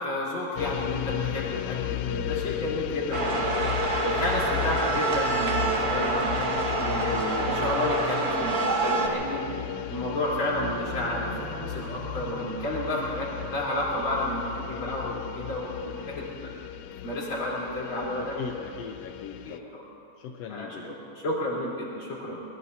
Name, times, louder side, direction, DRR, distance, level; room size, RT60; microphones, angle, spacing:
voice 1, 0.0-3.5 4.0-9.4 9.9-16.5 17.0-18.3 19.4-19.8 20.5-22.4, left 1 dB, 40° left, -6 dB, 4.5 m, -31 dB
sound 1, 0.6-19.6, left 12 dB, 85° left, 1.5 m, -34 dB
sound 2, 3.1-9.1, right 3 dB, 45° right, 1.2 m, -27 dB
sound 3, 5.9-15.3, right 3 dB, 85° right, 3.0 m, -41 dB
voice 2, 18.2-19.7 20.2-20.9, left 7 dB, 70° left, 2 dB, 1.6 m, -40 dB
23.0 x 22.0 x 2.8 m, 2.7 s
omnidirectional pair, 3.5 m